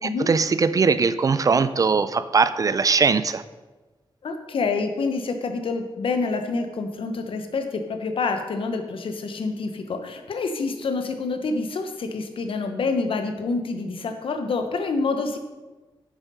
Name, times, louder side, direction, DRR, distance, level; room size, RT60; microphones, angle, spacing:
voice 1, 0.0-3.4, right 5 dB, 40° right, 13 dB, 0.4 m, -20 dB
voice 2, 4.2-15.4, left 4 dB, 70° left, 6 dB, 1.0 m, -27 dB
8.1 x 7.3 x 5.6 m, 1.2 s
wide cardioid pair, 165°, 9 cm